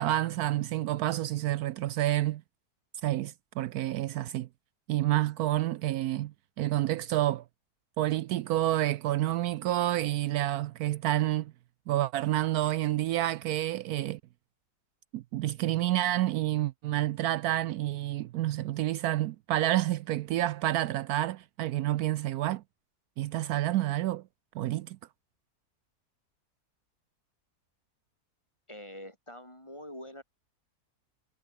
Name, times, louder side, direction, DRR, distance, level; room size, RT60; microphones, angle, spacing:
voice 1, 0.0-2.4 3.0-4.5 4.9-7.4 8.0-11.5 11.9-14.2 15.1-22.6 23.2-24.2 24.5-25.0, right 14 dB, 75° right, 1.0 m, -29 dB
voice 2, 28.7-30.2, left 1 dB, 15° left, 5.6 m, -45 dB
omnidirectional pair, 1.7 m